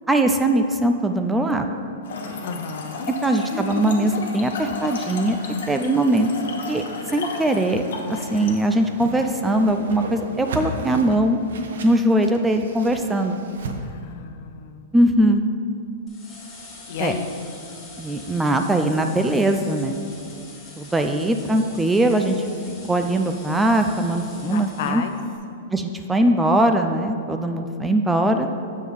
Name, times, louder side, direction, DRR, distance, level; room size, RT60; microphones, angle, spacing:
voice 1, 0.1-1.6 3.2-5.4 5.7-6.3 6.7-6.8 7.1-7.8 8.1-11.4 11.8-13.4 14.9-15.4 17.0-17.1 18.0-19.9 20.8-22.5 22.9-25.0 25.7-28.5, right 1 dB, 5° right, 5 dB, 0.3 m, -21 dB
Trickle dribble / Fill (with liquid), 2.0-8.7, left 3 dB, 80° left, 1.2 m, -33 dB
voice 2, 2.4-3.1 13.8-14.9 16.9-17.3 24.4-25.2, left 6 dB, 60° left, 7 dB, 0.6 m, -31 dB
Whoosh swoosh swish, 8.7-13.8, right 2 dB, 80° right, 0.7 m, -35 dB
sound 1, 16.1-25.4, left 2 dB, 15° left, 1.7 m, -44 dB
7.5 x 3.5 x 6.2 m, 2.5 s
hypercardioid pair, 145°, 0 cm